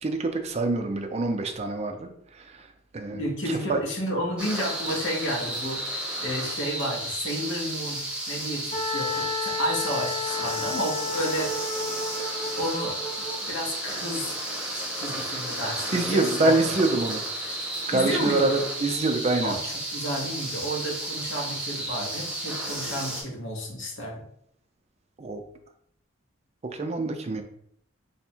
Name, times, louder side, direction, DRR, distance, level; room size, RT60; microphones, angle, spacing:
voice 1, 0.0-2.7 2.9-3.8 15.9-17.2 17.9-19.6 25.2-25.4 26.7-27.4, right 2 dB, 30° right, 5 dB, 0.4 m, -26 dB
voice 2, 3.1-5.9 6.2-8.0 8.3-11.6 12.6-13.0 13.4-14.3 14.7-16.6 17.9-18.5 19.4-24.2, equal, 60° left, -1 dB, 0.9 m, -31 dB
sound 1, 4.4-23.2, right 1 dB, 5° right, 0.8 m, -33 dB
Wind instrument woodwind instrument, 8.7-13.4, left 3 dB, 30° left, 0.8 m, -32 dB
3.4 x 2.1 x 4.3 m, 0.68 s
head